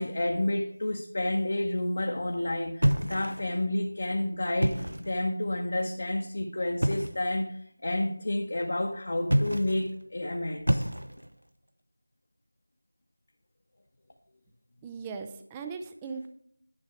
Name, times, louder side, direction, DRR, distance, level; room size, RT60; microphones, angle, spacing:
voice 1, 0.0-10.9, left 1 dB, 45° left, 2 dB, 0.8 m, -30 dB
sound 1, 2.8-3.6 4.5-5.2 6.8-7.3 9.2-9.9 10.7-11.4, equal, 85° right, 0.7 m, -28 dB
voice 2, 14.8-16.3, right 5 dB, 10° right, 6 dB, 0.3 m, -38 dB
9.7 x 5.5 x 4.6 m, 0.68 s
figure-of-eight pair, 170°, 0 cm